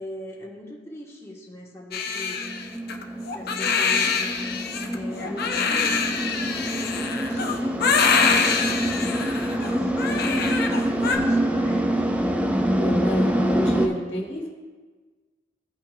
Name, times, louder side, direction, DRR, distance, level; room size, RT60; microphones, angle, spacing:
voice 1, 0.0-2.4 3.3-4.4 4.9-7.8 8.2-12.2, left 1 dB, 15° left, -4 dB, 1.4 m, -40 dB
Crying sobbing, 1.9-11.2, left 5 dB, 60° left, 0.7 m, -25 dB
sound 1, 2.2-13.9, right 1 dB, 10° right, 0.6 m, -26 dB
voice 2, 12.7-14.5, equal, 85° left, -1 dB, 1.5 m, -29 dB
15.5 x 5.7 x 2.4 m, 1.4 s
head